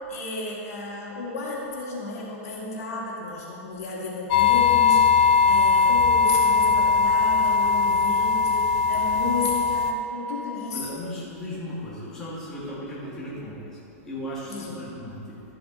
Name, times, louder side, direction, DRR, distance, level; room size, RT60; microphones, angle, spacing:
voice 1, 0.1-11.0 14.5-14.8, left 3 dB, 80° left, -4 dB, 2.4 m, -33 dB
sound 1, 4.3-9.9, left 5 dB, 30° left, 0.5 m, -20 dB
voice 2, 10.7-15.5, left 1 dB, 5° left, -9 dB, 1.7 m, -36 dB
12.0 x 7.8 x 3.8 m, 2.8 s
supercardioid pair, 180°, 8 cm